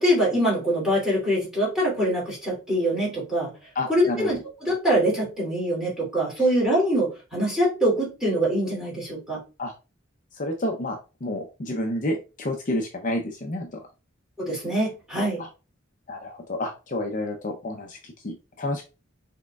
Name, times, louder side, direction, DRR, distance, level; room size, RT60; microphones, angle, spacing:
voice 1, 0.0-3.5 3.9-9.4 14.4-15.4, equal, 5° right, -5 dB, 2.7 m, -24 dB
voice 2, 3.7-4.3 9.6-9.7 10.3-13.8 15.4-15.5 16.1-18.8, left 1 dB, 40° left, 3 dB, 0.6 m, -30 dB
6.0 x 3.6 x 2.3 m, 0.30 s
head